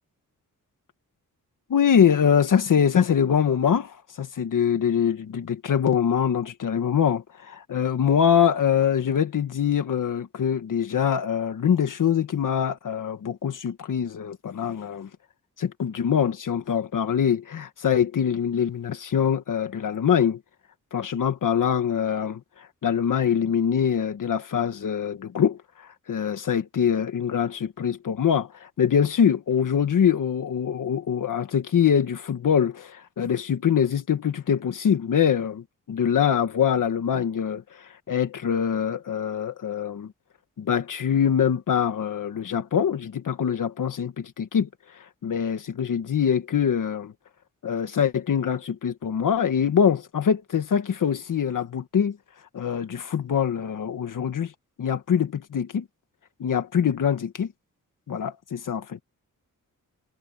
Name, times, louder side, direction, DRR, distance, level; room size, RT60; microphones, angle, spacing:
voice 1, 1.7-15.1 15.6-20.4 20.9-40.1 40.6-47.1 47.6-52.2 52.5-54.5 54.8-55.9 56.4-57.5 58.1-59.0, left 8 dB, 70° left, 1.5 m, -24 dB
wide cardioid pair, 130°, 33 cm